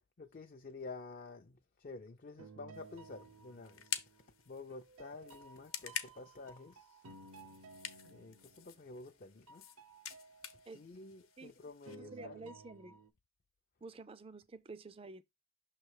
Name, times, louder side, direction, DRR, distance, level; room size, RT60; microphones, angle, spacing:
voice 1, 0.2-3.9 4.5-7.0 8.0-9.6 10.7-12.5, left 3 dB, 40° left, 0.4 m, -50 dB
sound 1, 2.4-4.3 4.7-9.2 9.5-11.4 11.9-13.1, right 3 dB, 85° right, 0.8 m, -57 dB
sound 2, 2.7-11.9, left 9 dB, 75° left, 0.9 m, -48 dB
voice 2, 11.9-13.0 13.8-15.2, right 3 dB, 25° right, 0.4 m, -50 dB
6.3 x 3.2 x 4.7 m
head